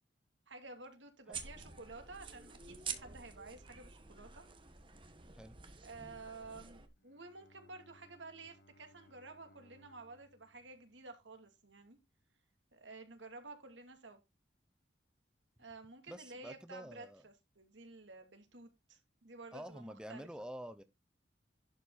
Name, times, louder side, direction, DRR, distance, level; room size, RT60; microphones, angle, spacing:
voice 1, 0.5-4.4 5.8-12.0 12.7-14.2 15.6-20.3, right 3 dB, 90° right, 2.5 m, -52 dB
sound 1, 1.3-6.9, right 6 dB, 30° right, 1.4 m, -48 dB
Bowed string instrument, 6.7-11.9, equal, 60° left, 1.2 m, -67 dB
voice 2, 16.1-17.2 19.5-20.8, equal, 5° right, 0.7 m, -48 dB
11.5 x 5.5 x 3.9 m
head